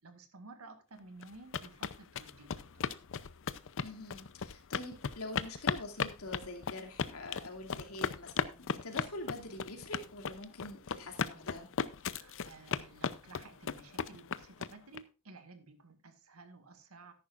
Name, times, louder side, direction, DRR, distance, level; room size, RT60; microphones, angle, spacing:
voice 1, 0.0-2.9 12.0-17.1, right 3 dB, 75° right, 8 dB, 2.0 m, -54 dB
sound 1, 1.2-15.0, left 6 dB, 60° left, 0.6 m, -36 dB
voice 2, 3.8-11.7, left 2 dB, 80° left, 2 dB, 2.7 m, -45 dB
13.5 x 11.0 x 2.5 m, 0.30 s
head